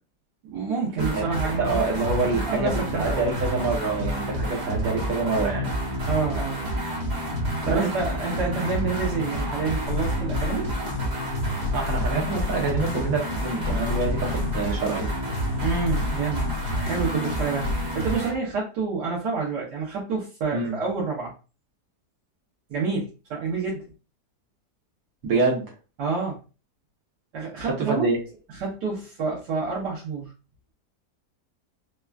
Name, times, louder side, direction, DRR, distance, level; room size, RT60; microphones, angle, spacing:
voice 1, 0.4-3.2 6.0-6.6 7.7-10.7 15.6-16.4 16.8-21.3 22.7-23.9 26.0-26.4 27.3-28.1 28.6-30.3, right 4 dB, 90° right, -6 dB, 1.5 m, -28 dB
sound 1, 1.0-18.4, equal, 40° right, 0.6 m, -29 dB
voice 2, 1.6-5.7 7.6-7.8 11.7-15.1 20.5-20.8 25.2-25.6 27.6-28.2, right 3 dB, 60° right, 0 dB, 1.3 m, -26 dB
sound 2, 9.9-17.9, left 4 dB, 70° left, 0.6 m, -33 dB
3.5 x 2.2 x 2.4 m, 0.33 s
omnidirectional pair, 1.8 m